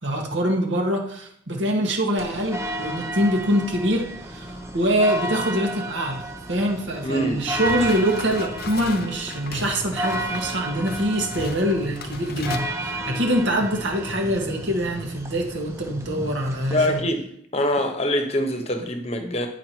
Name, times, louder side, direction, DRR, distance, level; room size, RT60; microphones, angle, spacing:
voice 1, 0.0-17.0, equal, 75° right, 1.5 m, -24 dB
sound 1, 2.2-17.0, right 1 dB, 15° right, 0.7 m, -33 dB
voice 2, 7.0-7.4 16.7-17.3 17.5-19.5, left 1 dB, 30° left, 1.0 m, -24 dB
sound 2, 7.5-12.6, left 4 dB, 50° left, 0.7 m, -36 dB
9.8 x 4.9 x 4.6 m
head